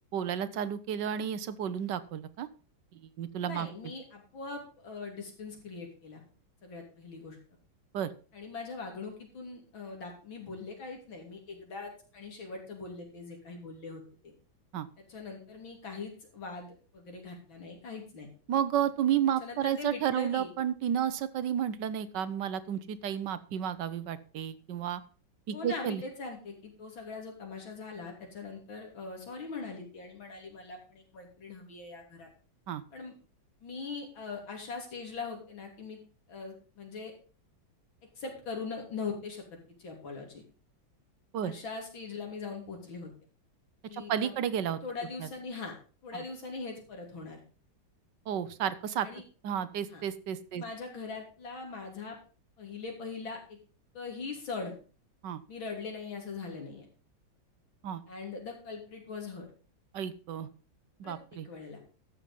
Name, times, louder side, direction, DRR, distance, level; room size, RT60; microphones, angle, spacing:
voice 1, 0.1-2.5 2.9-3.7 7.9-8.1 14.7-14.9 18.5-25.0 25.5-26.0 32.7-32.8 41.3-41.5 43.9-44.8 45.2-45.3 46.1-46.2 48.3-49.1 49.4-50.6 55.2-55.4 57.8-58.0 59.9-60.5 61.0-61.5, right 9 dB, 70° right, 14 dB, 1.4 m, -32 dB
voice 2, 3.4-6.2 6.6-7.4 8.3-14.3 15.0-18.3 19.4-20.5 25.5-32.3 32.9-33.1 33.6-36.0 36.3-37.1 38.2-39.4 39.8-40.4 41.4-43.1 43.9-44.3 44.8-45.7 46.0-47.4 49.0-49.2 49.9-50.0 50.5-52.2 52.6-53.6 53.9-54.7 55.5-56.9 58.1-59.5 61.0-61.2 61.4-61.8, left 4 dB, 85° left, 2 dB, 3.9 m, -41 dB
12.5 x 7.5 x 5.3 m, 0.37 s
omnidirectional pair, 2.1 m